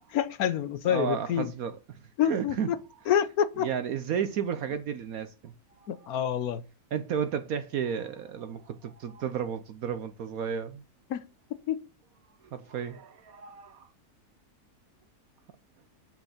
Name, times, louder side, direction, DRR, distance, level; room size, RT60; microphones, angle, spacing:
voice 1, 0.1-1.5 2.2-2.8 3.1-3.7 5.9-6.6 11.1-11.2 11.7-11.8, left 9 dB, 70° left, 1.2 m, -27 dB
voice 2, 0.8-2.7 3.6-5.5 5.8-6.1 6.9-10.8 12.4-13.9, right 8 dB, 65° right, 1.1 m, -33 dB
6.8 x 6.0 x 7.1 m
omnidirectional pair, 1.7 m